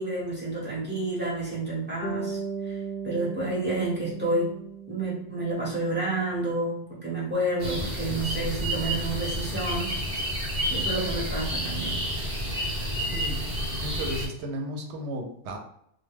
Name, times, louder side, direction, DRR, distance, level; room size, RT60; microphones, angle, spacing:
voice 1, 0.0-4.5 4.9-10.0 10.7-12.0, right 2 dB, 10° right, -6 dB, 1.0 m, -30 dB
Bass guitar, 2.0-6.1, right 5 dB, 20° left, 0.4 m, -37 dB
sound 1, 7.6-14.3, equal, 45° right, 0.8 m, -30 dB
voice 2, 13.8-15.6, equal, 85° right, 3 dB, 0.9 m, -34 dB
2.2 x 2.2 x 3.2 m, 0.72 s
omnidirectional pair, 1.1 m